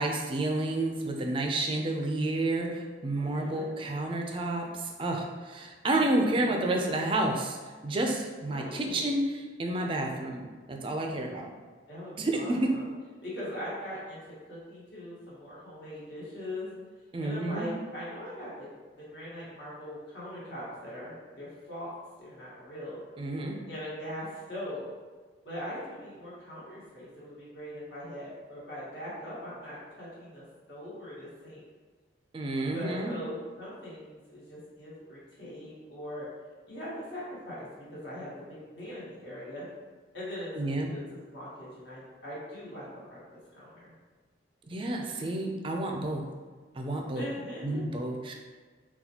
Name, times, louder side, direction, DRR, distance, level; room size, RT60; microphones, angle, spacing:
voice 1, 0.0-7.6 7.8-11.5 12.2-12.7 17.1-17.7 23.2-23.6 32.3-33.1 40.5-40.9 44.7-46.3 46.8-47.3 47.6-48.3, right 2 dB, 30° right, 2 dB, 0.3 m, -30 dB
voice 2, 3.2-3.7 6.0-6.9 8.4-9.0 11.9-12.9 13.2-14.2 14.5-16.7 17.2-18.7 19.0-21.9 22.2-23.0 23.7-24.9 25.4-31.6 32.7-36.3 36.7-38.3 38.7-39.7 40.1-41.0 41.3-43.2 43.5-43.9 47.1-47.9, equal, 70° left, -8 dB, 1.3 m, -41 dB
4.0 x 2.2 x 2.8 m, 1.4 s
head